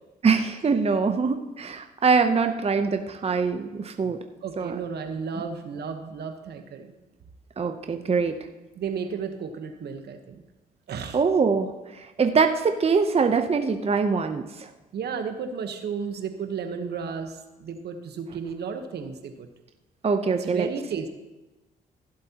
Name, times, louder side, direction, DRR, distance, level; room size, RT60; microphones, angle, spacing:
voice 1, 0.2-4.2 4.6-4.8 5.3-5.4 7.6-8.4 11.1-14.7 20.0-20.7, right 5 dB, 35° right, 7 dB, 0.8 m, -23 dB
voice 2, 4.4-6.9 8.7-10.4 10.9-11.2 14.9-19.5 20.3-21.1, right 6 dB, 65° right, 7 dB, 1.1 m, -33 dB
15.5 x 7.6 x 2.9 m, 1.1 s
supercardioid pair, 65°, 18 cm